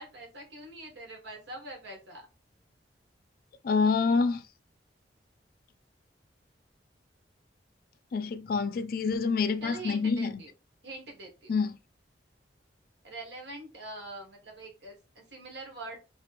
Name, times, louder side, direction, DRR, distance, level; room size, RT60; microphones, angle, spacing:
voice 1, 0.0-2.2 9.6-10.5 10.8-11.5 13.0-16.0, right 2 dB, 70° right, 1.3 m, -43 dB
voice 2, 3.6-4.4 8.1-10.4 11.5-11.8, left 4 dB, 50° left, 0.3 m, -27 dB
2.9 x 2.8 x 3.3 m
head